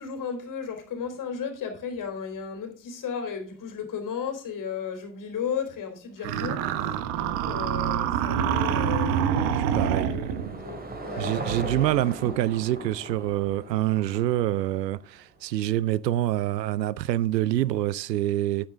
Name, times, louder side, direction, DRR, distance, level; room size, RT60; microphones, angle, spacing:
voice 1, 0.0-9.2 9.8-11.3 11.6-12.1, left 7 dB, 40° left, 3.4 m, -35 dB
sound 1, 6.2-10.6, right 8 dB, 60° right, 1.2 m, -26 dB
Car passing by / Engine, 9.4-15.2, right 2 dB, 20° right, 2.6 m, -38 dB
voice 2, 9.5-10.1 11.2-18.7, right 14 dB, 80° right, 0.6 m, -26 dB
9.2 x 8.8 x 3.6 m
figure-of-eight pair, 70°, 49 cm